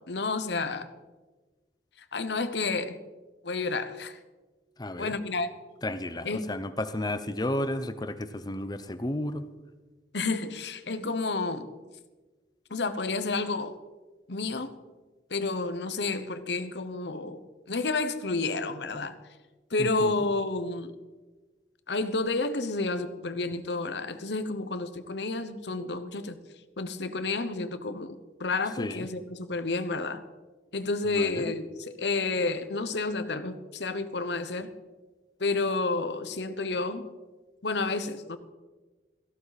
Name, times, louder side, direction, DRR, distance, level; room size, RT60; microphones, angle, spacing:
voice 1, 0.1-0.9 2.1-3.0 3.4-4.2 5.0-5.5 6.2-6.5 10.1-11.7 12.7-13.7 14.3-14.8 15.3-17.4 17.7-19.1 19.7-20.9 21.9-26.4 26.8-30.2 30.7-34.7 35.4-37.1 37.6-38.4, left 3 dB, 70° left, 11 dB, 1.0 m, -30 dB
voice 2, 4.8-5.2 5.8-9.4 19.8-20.1 28.8-29.1 31.1-31.5, left 1 dB, 20° left, 11 dB, 0.8 m, -32 dB
17.5 x 15.0 x 4.2 m, 1.3 s
head